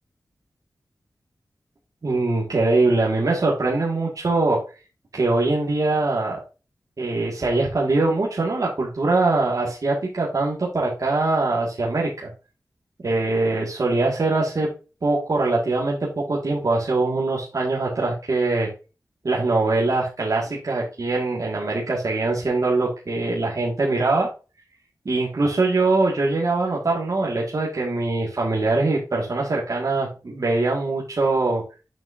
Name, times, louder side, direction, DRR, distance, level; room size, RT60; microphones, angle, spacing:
voice 1, 2.0-4.6 5.1-6.4 7.0-12.3 13.0-14.7 15.0-18.7 19.2-24.3 25.1-31.6, right 3 dB, 60° right, -4 dB, 1.9 m, -22 dB
7.2 x 6.1 x 2.7 m, 0.31 s
wide cardioid pair, 70°, 7 cm